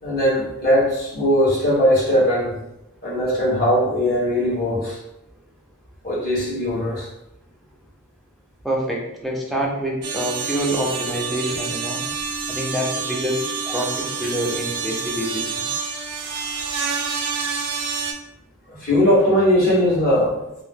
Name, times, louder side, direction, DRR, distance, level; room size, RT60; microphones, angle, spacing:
voice 1, 0.0-2.6 3.0-5.0 6.0-7.1 18.8-20.3, equal, 40° left, -7 dB, 1.2 m, -19 dB
voice 2, 8.6-12.0 12.5-15.8, equal, ahead, -2 dB, 0.4 m, -26 dB
sound 1, 10.0-18.1, right 5 dB, 85° right, 0.4 m, -28 dB
2.6 x 2.0 x 3.5 m, 0.88 s
head